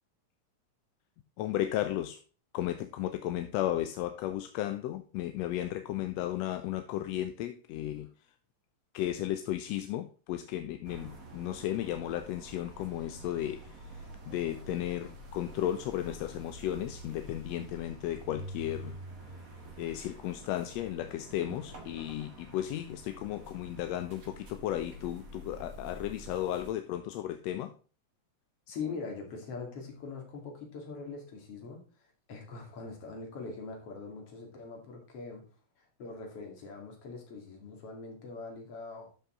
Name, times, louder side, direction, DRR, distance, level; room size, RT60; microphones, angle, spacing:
voice 1, 1.4-2.2 2.5-8.1 8.9-19.0 19.8-27.7, left 12 dB, 75° left, 8 dB, 1.7 m, -34 dB
sound 1, 10.8-26.7, right 1 dB, 35° right, 1.9 m, -47 dB
voice 2, 28.7-31.8 32.3-35.4 36.0-39.1, left 4 dB, 55° left, 2 dB, 3.2 m, -42 dB
12.5 x 5.6 x 3.8 m, 0.37 s
omnidirectional pair, 3.3 m